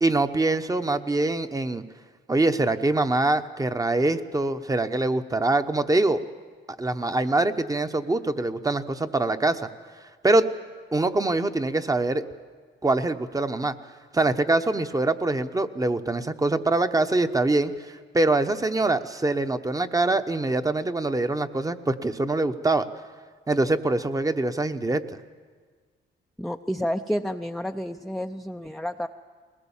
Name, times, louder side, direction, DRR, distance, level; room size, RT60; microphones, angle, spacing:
voice 1, 0.0-1.8 2.3-6.2 6.8-9.7 10.2-10.4 10.9-12.2 12.8-13.7 14.1-22.9 23.5-25.0, right 2 dB, 15° right, 9 dB, 0.9 m, -24 dB
voice 2, 26.4-29.1, equal, ahead, 5 dB, 0.5 m, -30 dB
21.0 x 19.5 x 7.3 m, 1.5 s
cardioid pair, 90°, 20 cm